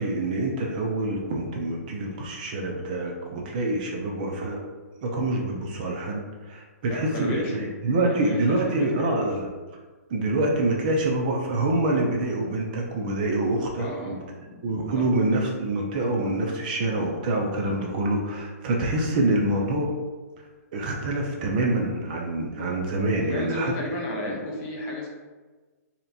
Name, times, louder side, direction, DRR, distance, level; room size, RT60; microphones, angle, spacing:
voice 1, 0.0-4.6 5.0-9.5 10.1-14.2 14.6-19.9 20.7-23.7, right 2 dB, 30° right, 0 dB, 0.5 m, -26 dB
voice 2, 6.8-7.6 8.0-9.4 13.8-14.7 15.0-15.1 23.2-25.1, left 1 dB, 20° left, -2 dB, 0.6 m, -33 dB
3.3 x 2.9 x 3.9 m, 1.3 s
hypercardioid pair, 165°, 9 cm